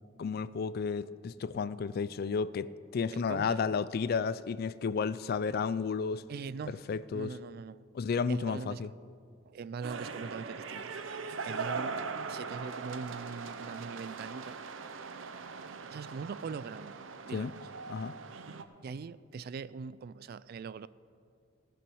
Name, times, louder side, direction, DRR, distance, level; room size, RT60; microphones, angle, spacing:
voice 1, 0.2-6.2 6.7-7.3 7.9-8.9 17.3-17.5 17.9-18.2, left 5 dB, 50° left, 17 dB, 0.3 m, -32 dB
voice 2, 3.1-3.6 6.3-6.8 7.1-7.8 8.3-8.8 9.5-10.9 11.4-12.0 12.3-14.6 15.9-17.0 17.3-17.7 18.8-20.9, right 5 dB, 50° right, 17 dB, 0.3 m, -41 dB
sound 1, 9.8-18.6, right 4 dB, 80° right, 0.7 m, -40 dB
18.0 x 6.0 x 6.3 m, 2.2 s
head